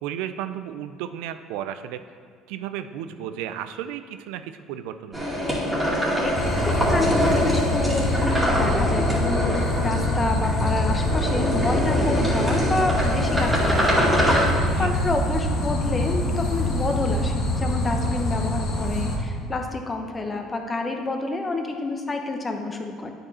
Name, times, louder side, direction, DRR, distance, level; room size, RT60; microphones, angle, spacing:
voice 1, 0.0-2.0 2.5-5.3 14.7-14.9, right 10 dB, 80° right, 11 dB, 0.3 m, -33 dB
sound 1, 5.1-14.4, equal, 15° right, 2.1 m, -24 dB
voice 2, 6.2-14.0 14.8-23.1, left 2 dB, 25° left, 4 dB, 0.9 m, -28 dB
sound 2, 6.3-19.2, left 1 dB, 55° left, 1.4 m, -25 dB
8.7 x 5.2 x 4.2 m, 2.1 s
supercardioid pair, 85°, 0 cm